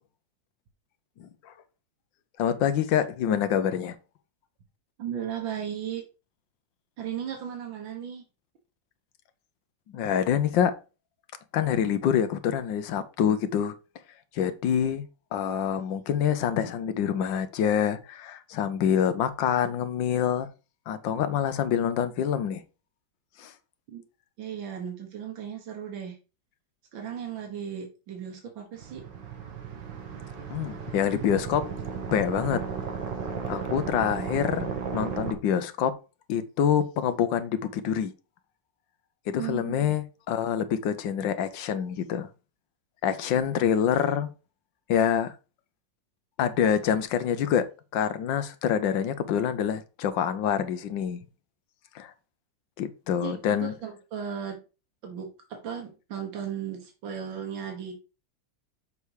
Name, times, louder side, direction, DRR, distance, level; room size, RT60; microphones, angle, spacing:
voice 1, 1.2-1.5 2.4-3.9 9.9-10.7 11.5-13.7 14.3-15.1 15.3-20.5 20.9-22.6 23.4-23.5 30.5-31.7 32.1-32.7 33.5-36.0 36.3-38.1 39.3-42.3 43.0-44.3 44.9-45.3 46.4-47.7 47.9-51.2 51.9-52.1 52.8-53.7, left 8 dB, 75° left, 1.5 m, -26 dB
voice 2, 5.0-6.0 7.0-8.2 23.9-24.0 24.4-26.2 26.9-29.0 39.4-40.0 53.2-54.6 55.0-57.9, right 8 dB, 85° right, 2.1 m, -36 dB
sound 1, 28.8-35.3, right 6 dB, 70° right, 1.8 m, -34 dB
6.9 x 5.1 x 4.7 m
omnidirectional pair, 2.0 m